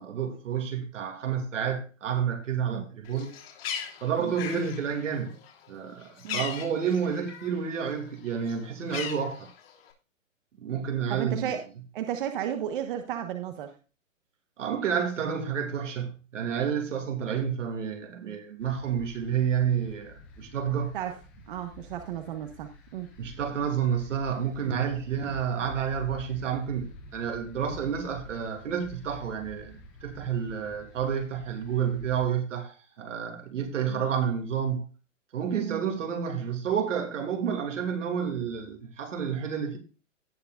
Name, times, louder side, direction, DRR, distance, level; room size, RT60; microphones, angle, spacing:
voice 1, 0.0-3.3 4.0-5.3 5.7-9.5 10.5-11.5 14.6-21.0 23.2-34.9 35.3-39.8, right 7 dB, 70° right, 2.8 m, -30 dB
Bird, 3.1-7.7 8.0-9.9, left 8 dB, 50° left, 3.4 m, -39 dB
voice 2, 11.1-11.6 11.9-13.7 20.9-21.2 21.5-23.1 33.9-34.0 35.6-35.8, right 10 dB, 40° right, 1.3 m, -33 dB
sound 1, 18.6-32.3, left 2 dB, 5° left, 0.4 m, -49 dB
17.5 x 5.9 x 2.5 m
hypercardioid pair, 160°, 39 cm